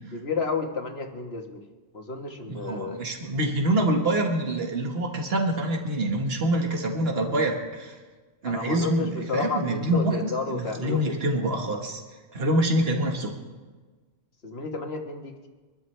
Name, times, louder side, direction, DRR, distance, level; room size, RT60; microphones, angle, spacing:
voice 1, 0.1-1.6 1.9-3.0 8.5-11.2 14.4-15.5, left 4 dB, 80° left, 3 dB, 1.8 m, -31 dB
voice 2, 2.5-8.0 8.4-12.0 12.3-13.3, right 1 dB, 70° right, 2 dB, 1.9 m, -26 dB
24.5 x 12.5 x 3.4 m, 1.3 s
omnidirectional pair, 1.0 m